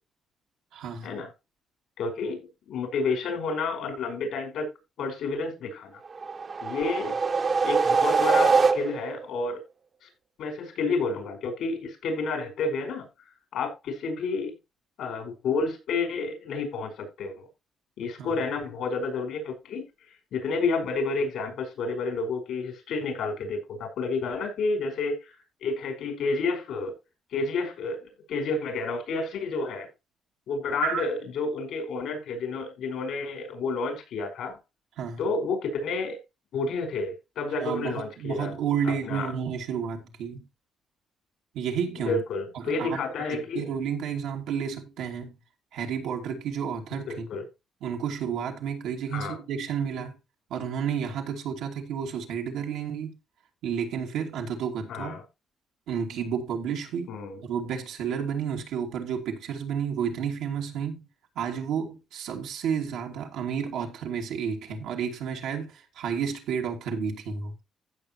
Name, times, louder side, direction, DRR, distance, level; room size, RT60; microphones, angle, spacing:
voice 1, 0.7-1.2 18.2-18.3 30.8-31.0 35.0-35.2 37.6-40.4 41.5-42.2 42.5-43.0 43.3-45.4 45.7-47.3 47.8-50.2 50.5-53.2 53.6-55.2 55.9-61.0 61.4-67.5, right 7 dB, 85° right, 2.6 m, -31 dB
voice 2, 2.0-4.7 5.0-5.9 6.6-7.2 7.6-9.6 10.0-10.1 10.4-13.1 13.5-14.6 15.0-17.5 18.0-19.9 20.3-25.3 25.6-26.9 27.3-29.9 30.5-34.5 35.2-36.2 36.5-38.5 38.8-39.3 42.0-43.7 47.1-47.5 49.1-49.4 54.9-55.2 57.1-57.4, left 3 dB, 75° left, 5.2 m, -30 dB
sound 1, 6.1-9.3, right 4 dB, 40° right, 1.2 m, -23 dB
15.5 x 6.5 x 3.1 m
cardioid pair, 90°, 0 cm